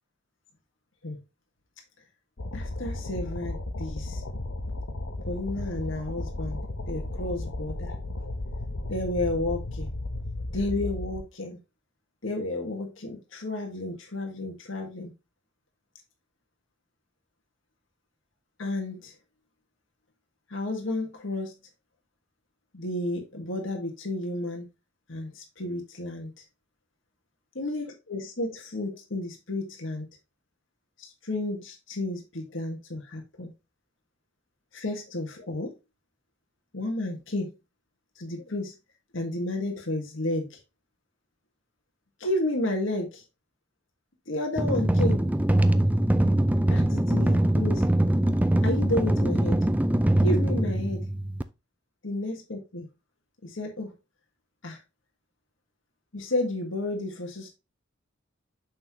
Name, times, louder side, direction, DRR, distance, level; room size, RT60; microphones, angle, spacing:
sound 1, 2.4-11.2, left 2 dB, 90° left, 1.2 m, -34 dB
voice 1, 2.5-4.2 5.3-7.9 8.9-9.9 10.5-11.6 12.2-15.1 18.6-19.1 20.5-21.5 22.7-24.6 25.1-26.4 27.5-30.1 31.0-33.5 34.7-35.7 36.7-37.5 38.1-38.7 39.1-40.6 42.2-43.2 44.3-45.2 46.7-47.8 48.6-49.6 50.2-51.0 52.0-52.9 53.4-53.9 54.6-54.8 56.1-57.5, left 1 dB, 70° left, 2 dB, 1.7 m, -32 dB
sound 2, 44.6-51.4, right 1 dB, 10° right, 0.4 m, -23 dB
6.6 x 6.0 x 3.0 m, 0.26 s
head